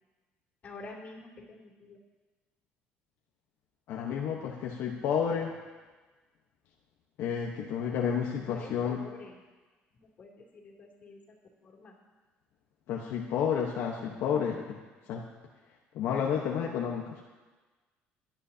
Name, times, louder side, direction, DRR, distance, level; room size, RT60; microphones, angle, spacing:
voice 1, 0.6-2.0 8.4-9.4 9.9-11.4 11.6-11.9, left 3 dB, 40° left, -1 dB, 3.0 m, -48 dB
voice 2, 3.9-5.5 7.2-9.0 12.9-14.8 15.1-15.2 15.9-17.2, left 7 dB, 70° left, -1 dB, 1.2 m, -31 dB
23.0 x 10.5 x 2.9 m, 1.3 s
cardioid pair, 110°, 4 cm